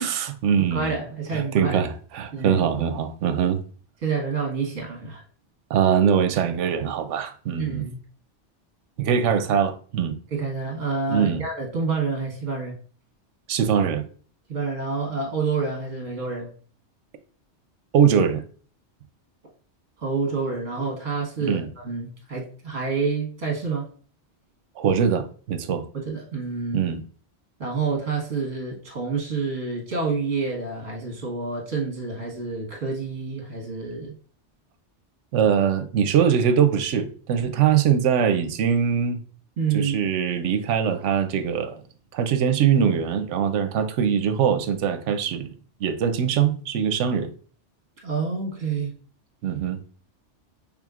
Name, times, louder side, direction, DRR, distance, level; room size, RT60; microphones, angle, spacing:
voice 1, 0.0-1.0 1.3-3.6 5.7-7.9 9.0-10.2 11.1-11.4 13.5-14.0 17.9-18.4 21.4-21.7 24.8-25.8 26.7-27.0 35.3-39.2 39.7-41.8 42.1-45.5 45.8-47.3 49.4-49.8, right 8 dB, 85° right, 0.9 m, -22 dB
voice 2, 0.7-1.8 2.3-2.6 4.0-5.2 7.6-8.0 10.3-12.7 14.5-16.5 20.0-23.9 25.9-26.8 27.6-34.1 39.6-40.0 48.0-48.9, right 4 dB, 65° right, 1.5 m, -28 dB
6.0 x 3.6 x 2.4 m
omnidirectional pair, 1.2 m